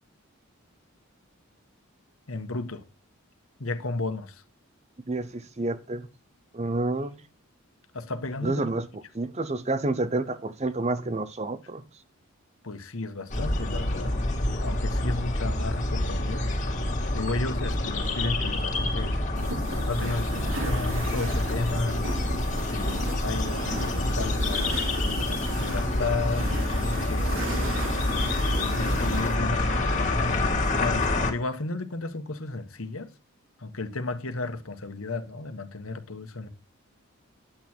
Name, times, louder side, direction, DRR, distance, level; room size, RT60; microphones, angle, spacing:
voice 1, 2.3-2.8 3.6-4.4 7.9-8.6 12.6-14.2 14.6-16.5 17.1-19.2 19.9-22.0 22.6-24.9 25.6-27.5 28.4-33.1 33.6-36.5, left 3 dB, 70° left, 1.4 m, -33 dB
voice 2, 5.1-6.1 6.5-7.2 8.4-8.9 9.1-11.8, right 2 dB, 30° right, 0.7 m, -29 dB
sound 1, 13.3-31.3, left 1 dB, 35° left, 2.1 m, -27 dB
sound 2, 19.4-29.4, right 2 dB, 60° right, 2.0 m, -37 dB
10.5 x 8.7 x 4.5 m
head